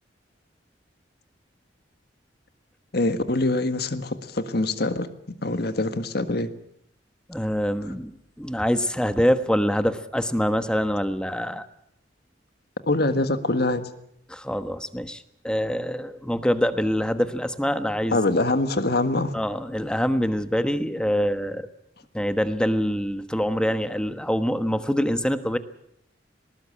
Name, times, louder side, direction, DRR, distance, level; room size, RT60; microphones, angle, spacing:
voice 1, 2.9-6.5 12.9-13.8 18.1-19.3, left 2 dB, 60° left, 10 dB, 1.6 m, -24 dB
voice 2, 7.3-11.7 14.3-18.2 19.3-21.7 22.1-25.6, equal, 5° left, 10 dB, 1.2 m, -25 dB
19.5 x 19.0 x 8.8 m, 0.75 s
head